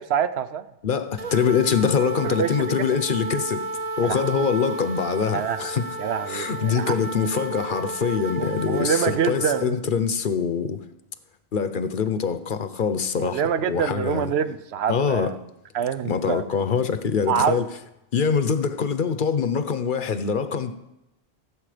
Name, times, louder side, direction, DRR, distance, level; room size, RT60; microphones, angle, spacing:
voice 1, 0.0-0.7 2.2-3.0 4.0-4.3 5.3-5.6 6.0-7.0 8.4-10.0 13.2-15.4 15.7-16.4 17.3-17.6, right 8 dB, 80° right, 0.9 m, -26 dB
voice 2, 0.8-3.7 4.0-5.8 6.3-10.8 11.5-14.3 14.9-15.3 16.0-17.6 18.1-20.7, left 6 dB, 55° left, 0.8 m, -24 dB
sound 1, 1.2-9.7, right 2 dB, 40° right, 0.8 m, -32 dB
15.5 x 7.4 x 5.0 m
omnidirectional pair, 1.1 m